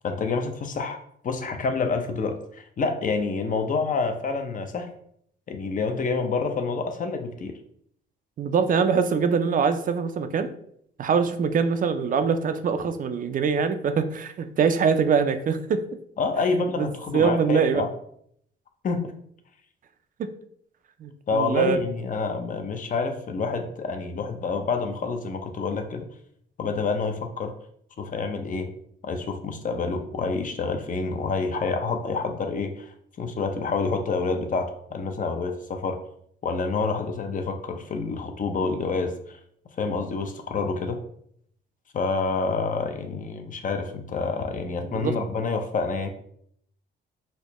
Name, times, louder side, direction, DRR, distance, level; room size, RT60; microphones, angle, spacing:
voice 1, 0.0-1.0 1.2-4.9 5.5-7.6 16.2-17.9 18.8-19.1 21.3-26.0 26.6-27.5 28.0-28.7 29.0-36.0 36.4-39.4 39.8-41.0 41.9-46.1, left 4 dB, 40° left, 6 dB, 0.6 m, -28 dB
voice 2, 8.4-10.5 11.0-15.8 16.8-16.9 17.1-17.8 20.2-20.3 21.0-21.8 44.9-45.2, right 6 dB, 45° right, 9 dB, 0.4 m, -23 dB
4.2 x 2.1 x 3.0 m, 0.67 s
cardioid pair, 90°, 20 cm